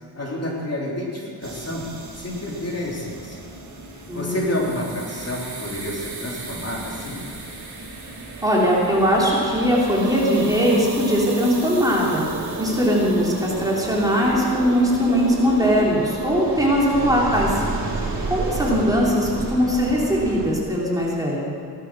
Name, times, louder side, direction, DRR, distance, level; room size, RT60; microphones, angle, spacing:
voice 1, 0.1-1.9 2.1-3.5 3.9-7.2, left 1 dB, 40° left, -4 dB, 3.4 m, -29 dB
sound 1, 1.4-20.6, right 3 dB, 45° right, 2.9 m, -32 dB
voice 2, 4.1-4.4 8.4-12.2 12.6-17.6 18.0-21.5, equal, 10° right, -5 dB, 3.4 m, -20 dB
16.5 x 12.5 x 6.3 m, 2.5 s
wide cardioid pair, 130°, 40 cm